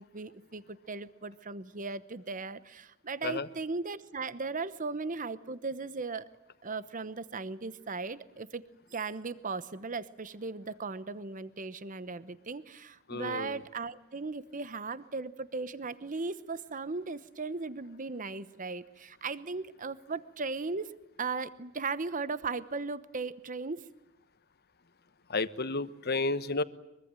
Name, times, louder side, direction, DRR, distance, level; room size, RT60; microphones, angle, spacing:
voice 1, 0.0-6.3 6.6-8.6 8.9-20.9 21.2-23.9, right 4 dB, 40° right, 15 dB, 1.0 m, -37 dB
voice 2, 13.1-13.6 25.3-26.6, left 3 dB, 50° left, 14 dB, 1.2 m, -31 dB
24.0 x 23.0 x 9.0 m, 0.88 s
head